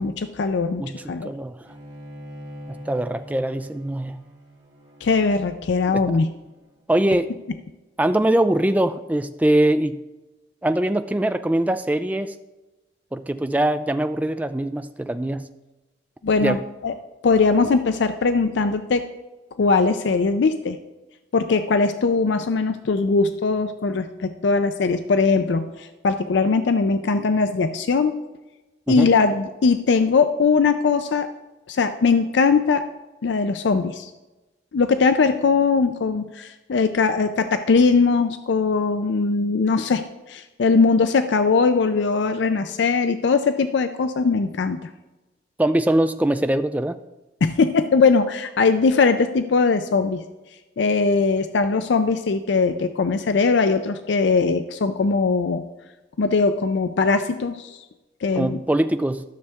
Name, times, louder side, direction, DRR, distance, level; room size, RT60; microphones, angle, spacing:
voice 1, 0.0-1.3 5.0-6.3 16.2-16.9 17.2-19.0 19.6-20.8 21.3-28.2 28.9-31.3 31.7-32.8 33.2-34.1 34.7-44.8 47.4-50.2 50.8-55.6 56.2-57.8 58.2-58.6, left 4 dB, 65° left, 9 dB, 0.4 m, -20 dB
voice 2, 0.8-1.5 2.7-4.2 5.9-6.1 6.9-7.3 8.0-10.0 10.6-12.3 13.1-15.5 16.4-16.6 28.9-29.1 45.6-47.0 58.4-59.2, right 1 dB, 10° right, 10 dB, 0.3 m, -22 dB
Bowed string instrument, 1.6-7.0, equal, 65° right, 2.2 m, -43 dB
12.5 x 6.6 x 3.5 m, 1.1 s
head